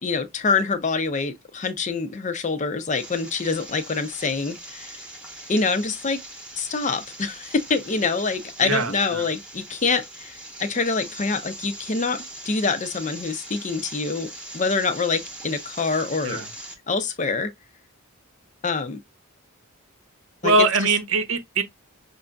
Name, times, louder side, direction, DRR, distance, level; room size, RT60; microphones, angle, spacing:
voice 1, 0.0-5.0 5.5-6.2 6.6-16.4 16.9-17.5 18.6-19.0 20.4-20.5, left 4 dB, 35° left, 0.5 m, -25 dB
sound 1, 2.9-16.7, right 1 dB, 5° right, 0.9 m, -41 dB
voice 2, 8.6-9.3 16.2-16.5 20.4-21.6, right 2 dB, 60° right, 0.7 m, -22 dB
5.9 x 2.6 x 2.2 m
head